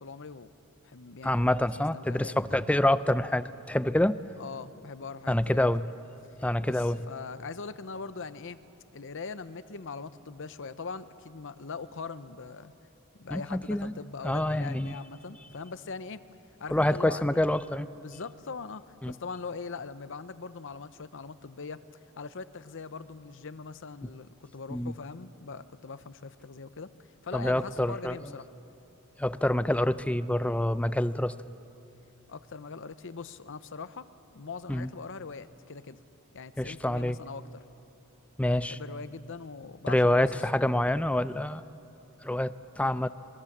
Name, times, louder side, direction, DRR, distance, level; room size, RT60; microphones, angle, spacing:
voice 1, 0.0-0.5 0.8-1.5 1.8-2.6 4.4-5.7 6.6-8.6 8.9-12.7 13.2-16.2 16.6-17.4 18.0-21.9 22.2-26.9 27.2-28.5 32.3-34.1 34.3-36.0 36.3-37.6 38.7-40.4, left 4 dB, 60° left, 13 dB, 0.8 m, -41 dB
voice 2, 1.2-4.2 5.3-5.9 6.4-7.0 13.3-13.9 14.2-14.9 16.7-17.9 19.0-19.2 24.7-24.9 27.3-28.2 29.2-31.3 34.7-34.9 36.6-37.2 38.4-38.8 39.9-41.6 42.2-43.1, left 1 dB, 5° left, 14 dB, 0.5 m, -26 dB
27.0 x 22.0 x 7.4 m, 2.8 s
head